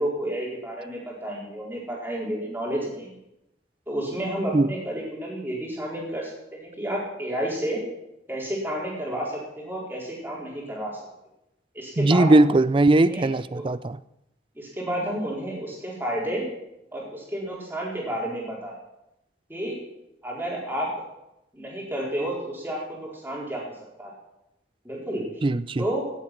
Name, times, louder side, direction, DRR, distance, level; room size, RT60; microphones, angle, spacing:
voice 1, 0.0-3.1 3.9-7.8 8.3-11.0 11.7-12.5 12.9-13.6 14.5-16.5 16.9-18.8 19.5-19.8 20.2-20.9 21.5-23.6 24.0-24.1 24.8-25.3 25.8-26.1, right 1 dB, 10° right, -4 dB, 4.2 m, -31 dB
voice 2, 12.0-14.0 25.4-25.8, right 2 dB, 30° right, 16 dB, 0.4 m, -19 dB
17.5 x 8.3 x 6.0 m, 0.88 s
head